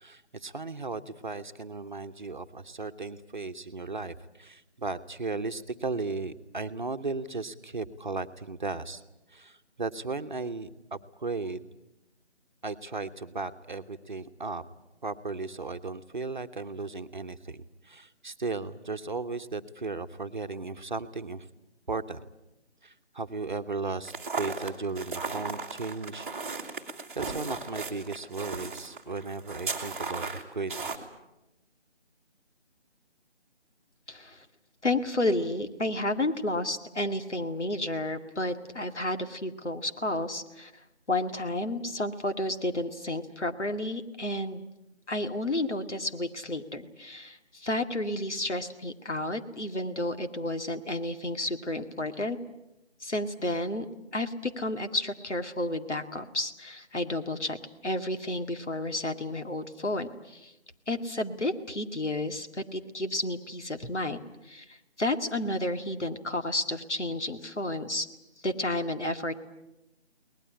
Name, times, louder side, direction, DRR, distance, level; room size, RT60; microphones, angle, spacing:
voice 1, 0.0-9.0 9.3-11.7 12.6-14.6 15.0-21.5 21.9-22.2 22.8-26.3 27.1-30.9, right 3 dB, 45° right, 9 dB, 1.1 m, -36 dB
sound 1, 24.0-31.0, right 4 dB, 10° right, 1.5 m, -36 dB
voice 2, 34.1-34.5 34.8-40.7 41.1-44.7 45.1-52.4 53.0-53.9 54.1-57.6 57.8-60.5 60.9-68.1 68.4-69.3, left 1 dB, 80° left, 7 dB, 2.3 m, -31 dB
22.5 x 19.5 x 10.0 m, 0.92 s
figure-of-eight pair, 160°, 34 cm